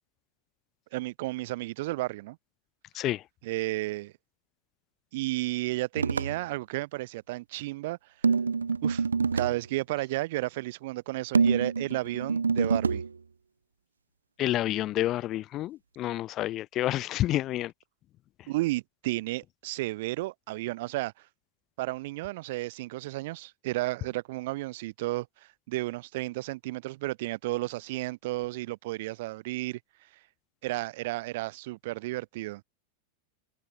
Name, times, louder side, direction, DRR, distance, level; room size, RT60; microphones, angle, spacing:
voice 1, 0.9-2.4 3.4-4.1 5.1-8.0 8.8-9.1 9.3-13.0 18.5-21.1 21.8-29.8 30.6-32.6, right 19 dB, 50° right, 1.1 m, -33 dB
sound 1, 6.0-6.4 8.2-9.6 11.3-13.1, right 5 dB, 75° right, 0.4 m, -26 dB
voice 2, 14.4-17.7, left 14 dB, 35° left, 0.5 m, -29 dB
figure-of-eight pair, 90°, 0 cm